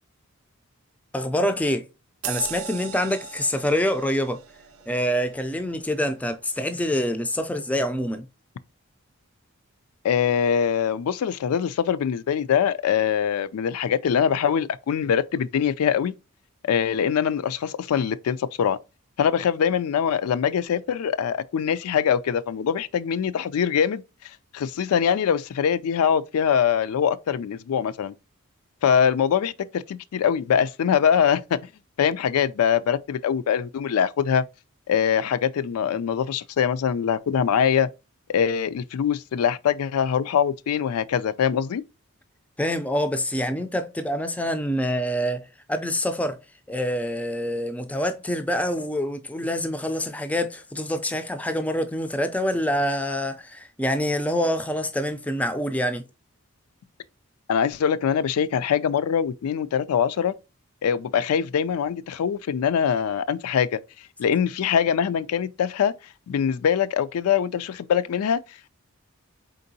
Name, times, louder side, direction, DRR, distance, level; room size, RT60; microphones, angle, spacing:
voice 1, 1.1-1.9 2.3-4.4 4.9-8.2 42.6-45.4 45.7-46.4 46.7-56.0, equal, 5° left, 0.3 m, -26 dB
sound 1, 2.2-7.2 7.6-7.8, right 10 dB, 75° right, 0.5 m, -39 dB
voice 2, 10.0-16.1 16.7-18.8 19.2-28.1 28.8-31.6 32.0-34.4 34.9-37.9 38.3-41.8 57.5-60.3 60.8-63.8 64.2-65.9 66.3-68.7, left 8 dB, 90° left, 0.3 m, -23 dB
4.4 x 3.8 x 2.7 m
head